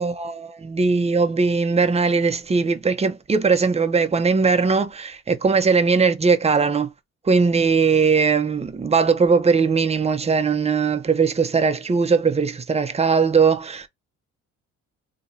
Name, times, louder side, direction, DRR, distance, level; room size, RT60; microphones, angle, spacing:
voice 1, 0.0-6.9 7.3-13.9, right 5 dB, 20° right, 0.6 m, -20 dB
2.9 x 2.4 x 4.2 m
cardioid pair, 90°, 30 cm